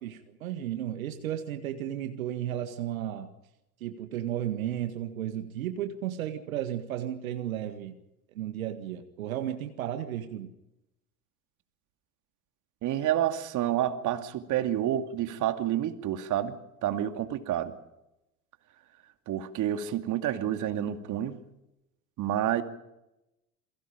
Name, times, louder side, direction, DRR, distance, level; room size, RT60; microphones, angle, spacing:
voice 1, 0.0-3.3 3.8-7.9 8.3-10.5, right 11 dB, 70° right, 7 dB, 1.9 m, -34 dB
voice 2, 12.8-16.6 16.8-17.7 19.3-21.4 22.2-22.6, right 11 dB, 45° right, 7 dB, 2.5 m, -29 dB
28.5 x 22.5 x 5.1 m, 0.89 s
figure-of-eight pair, 75°, 43 cm